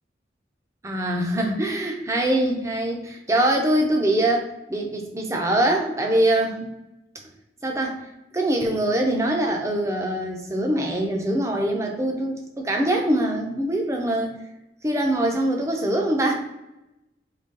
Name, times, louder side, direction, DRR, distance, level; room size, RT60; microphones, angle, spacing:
voice 1, 0.8-6.7 7.6-14.3 14.8-16.3, right 1 dB, 15° right, 1 dB, 0.6 m, -23 dB
4.0 x 3.0 x 3.7 m, 0.93 s
head